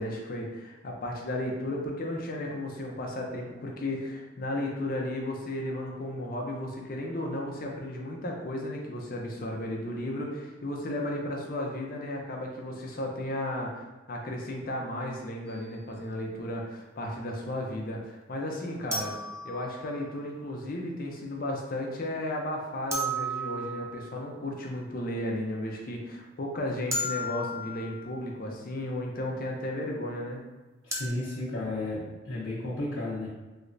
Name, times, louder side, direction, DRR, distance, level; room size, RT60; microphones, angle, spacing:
voice 1, 0.0-19.1 19.4-30.4, left 1 dB, 50° left, 0 dB, 0.6 m, -34 dB
sound 1, 15.5-15.6 18.9-20.2 22.9-24.3 26.9-28.1 30.9-31.1, right 1 dB, 15° right, 0.4 m, -34 dB
voice 2, 30.8-33.3, left 2 dB, 90° left, -8 dB, 0.8 m, -33 dB
3.3 x 3.2 x 2.5 m, 1.2 s
head